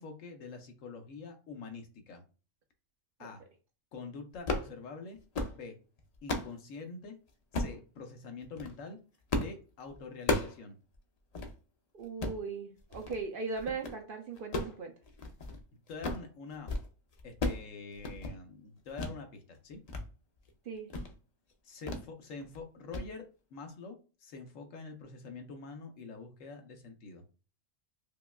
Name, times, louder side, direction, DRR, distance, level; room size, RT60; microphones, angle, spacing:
voice 1, 0.0-2.2 3.2-3.4 3.9-5.2 5.5-5.8 6.2-7.2 7.5-9.0 9.3-10.8 15.9-16.7 17.2-19.8 21.6-23.2 23.5-27.2, left 4 dB, 85° left, 1.2 m, -45 dB
sound 1, 4.3-4.7 5.2-5.6 6.0-6.5 7.5-7.8 8.4-8.7 9.3-9.6 9.9-10.6 10.9-11.0 11.3-11.5 12.0-12.4 12.9-13.2 13.6-14.0 14.4-15.6 15.9-16.3 16.5-16.9 17.1-17.7 17.9-18.4 19.0-19.2 19.6-20.0 20.4-20.5 20.9-21.1 21.9-22.1 22.4-22.6 22.9-23.1, left 2 dB, 50° left, 0.4 m, -34 dB
voice 2, 11.9-14.9 20.7-20.9, right 4 dB, 60° right, 0.6 m, -38 dB
5.0 x 2.2 x 2.2 m
omnidirectional pair, 1.3 m